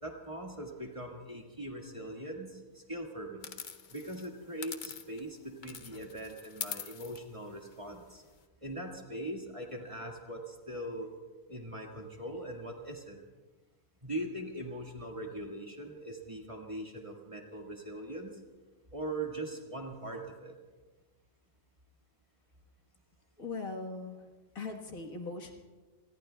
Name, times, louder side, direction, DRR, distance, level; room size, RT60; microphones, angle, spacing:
voice 1, 0.0-3.5 3.9-8.2 8.6-11.1 11.5-13.2 14.0-18.4 18.9-20.6, right 1 dB, 25° right, 0 dB, 1.8 m, -41 dB
sound 1, 3.4-5.3 5.6-8.4, left 7 dB, 45° left, 0.7 m, -44 dB
voice 2, 23.4-24.3 24.6-25.6, left 3 dB, 75° left, 1 dB, 1.9 m, -40 dB
29.5 x 21.0 x 2.3 m, 1.3 s
omnidirectional pair, 1.5 m